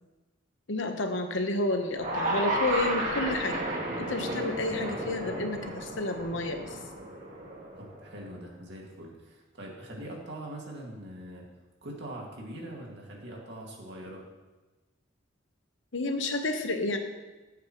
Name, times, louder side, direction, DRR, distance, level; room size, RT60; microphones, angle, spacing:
voice 1, 0.7-3.6 4.0-6.8 15.9-17.0, left 2 dB, 70° left, 5 dB, 1.1 m, -30 dB
sound 1, 1.9-8.2, right 1 dB, 40° right, 2.0 m, -33 dB
voice 2, 7.8-11.4 11.8-14.2, right 1 dB, 60° right, -2 dB, 2.3 m, -42 dB
14.5 x 8.3 x 3.1 m, 1.2 s
head